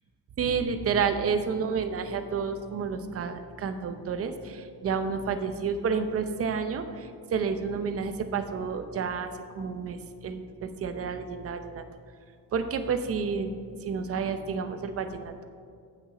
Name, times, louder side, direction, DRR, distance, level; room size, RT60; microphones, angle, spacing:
voice 1, 0.4-10.0 10.2-11.8 12.5-13.5 13.8-15.4, right 5 dB, 35° right, 8 dB, 0.6 m, -30 dB
16.0 x 6.4 x 4.1 m, 2.3 s
cardioid pair, 170°, 42 cm